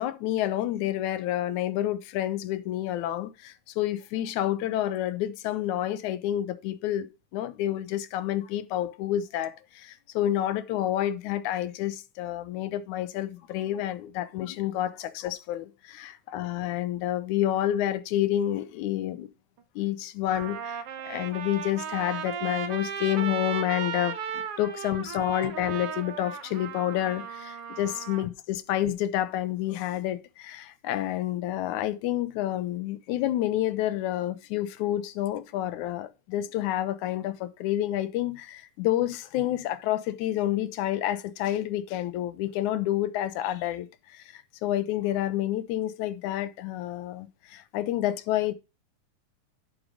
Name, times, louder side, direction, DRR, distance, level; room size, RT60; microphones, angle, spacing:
voice 1, 0.0-19.3 19.8-48.5, left 13 dB, 75° left, 2.1 m, -29 dB
Trumpet, 19.6-19.7 20.3-28.3, right 7 dB, 65° right, 1.6 m, -36 dB
10.0 x 6.4 x 4.9 m
omnidirectional pair, 3.6 m